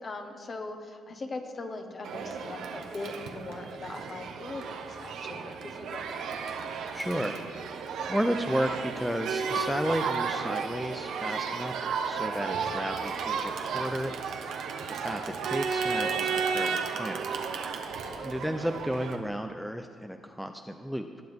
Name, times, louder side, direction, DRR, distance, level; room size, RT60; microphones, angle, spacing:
voice 1, 0.0-6.4 18.0-18.3, left 3 dB, 40° left, 5 dB, 1.3 m, -40 dB
Crowd, 2.0-19.2, right 5 dB, 75° right, 1.0 m, -33 dB
voice 2, 6.9-11.8 12.0-14.6 15.0-17.4 18.2-21.1, equal, ahead, 6 dB, 0.5 m, -33 dB
19.5 x 7.6 x 3.6 m, 2.3 s
cardioid pair, 90°, 0 cm